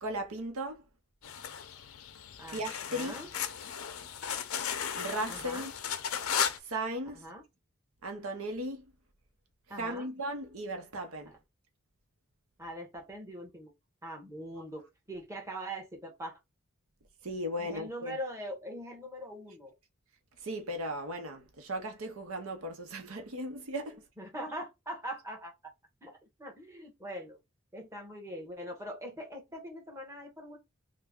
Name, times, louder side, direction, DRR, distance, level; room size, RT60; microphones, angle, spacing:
voice 1, 0.0-0.8 2.5-3.1 4.9-5.7 6.6-7.2 8.0-8.8 9.8-11.3 17.2-18.2 20.4-24.0, right 1 dB, 85° right, 0.7 m, -36 dB
sound 1, 1.2-6.6, left 8 dB, 85° left, 0.5 m, -35 dB
voice 2, 2.9-3.3 5.3-5.7 7.1-7.4 9.7-10.1 11.3-11.4 12.6-13.7 14.0-16.4 17.6-19.7 24.2-25.5 26.0-26.1 26.4-27.4 27.7-30.6, equal, 15° right, 1.1 m, -42 dB
3.3 x 2.1 x 3.5 m
head